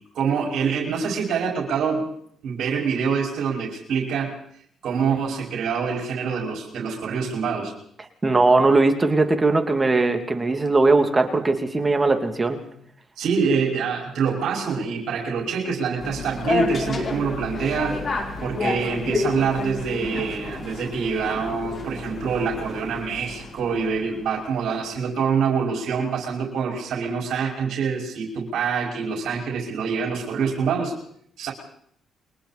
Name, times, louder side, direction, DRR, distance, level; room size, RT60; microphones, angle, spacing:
voice 1, 0.1-2.1 2.4-4.3 4.8-7.7 13.2-18.0 18.4-30.9 31.4-31.5, right 6 dB, 75° right, -1 dB, 5.4 m, -25 dB
voice 2, 8.2-12.6, right 3 dB, 25° right, 5 dB, 2.7 m, -19 dB
sound 1, 16.0-24.3, left 3 dB, 45° left, 4.6 m, -30 dB
29.0 x 23.5 x 4.3 m, 0.67 s
cardioid pair, 90°, 0 cm